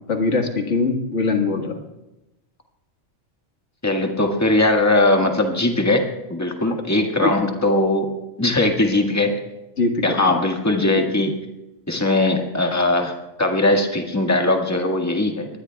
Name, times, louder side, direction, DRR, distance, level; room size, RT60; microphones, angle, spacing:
voice 1, 0.1-1.8 7.2-7.3 8.8-8.9 9.8-10.2, left 3 dB, 65° left, 3 dB, 2.0 m, -22 dB
voice 2, 3.8-6.0 6.3-8.1 8.4-9.3 10.0-11.3 11.9-13.1 13.4-15.5, left 2 dB, 15° left, 2 dB, 1.7 m, -19 dB
24.5 x 20.0 x 2.3 m, 0.99 s
omnidirectional pair, 1.3 m